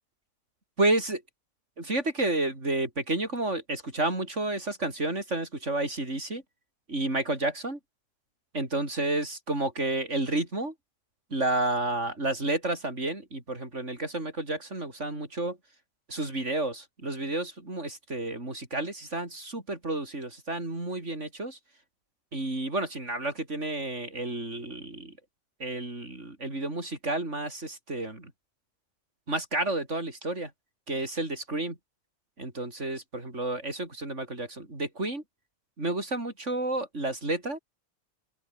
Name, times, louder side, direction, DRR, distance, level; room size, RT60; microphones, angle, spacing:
voice 1, 0.8-1.2 1.8-6.4 6.9-7.8 8.5-10.7 11.3-15.6 16.1-21.6 22.3-25.1 25.6-28.3 29.3-30.5 30.9-31.8 32.4-35.2 35.8-37.6, right 2 dB, 80° right, 5.9 m, -31 dB
open air
omnidirectional pair, 1.2 m